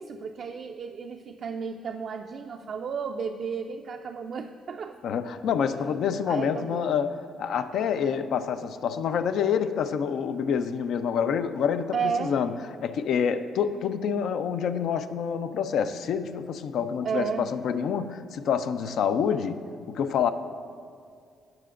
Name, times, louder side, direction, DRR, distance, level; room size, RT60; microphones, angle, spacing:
voice 1, 0.0-5.0 6.3-6.9 11.9-12.3 17.0-17.5, right 6 dB, 60° right, 4 dB, 0.3 m, -33 dB
voice 2, 5.0-12.5 12.8-19.6 19.9-20.3, left 7 dB, 75° left, 10 dB, 0.4 m, -27 dB
17.0 x 5.8 x 2.5 m, 2.2 s
cardioid pair, 90°, 0 cm